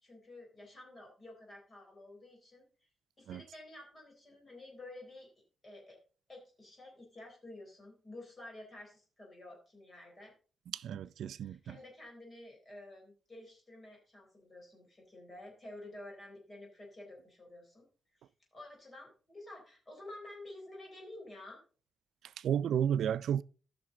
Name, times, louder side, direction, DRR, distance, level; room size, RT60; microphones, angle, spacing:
voice 1, 0.0-2.9 3.2-5.3 5.6-6.0 6.3-10.3 11.3-17.9 18.2-21.6, left 1 dB, 25° left, 3.8 m, -51 dB
voice 2, 10.7-11.8 22.4-23.4, right 9 dB, 80° right, 0.4 m, -32 dB
14.5 x 6.0 x 3.7 m
wide cardioid pair, 165°, 0 cm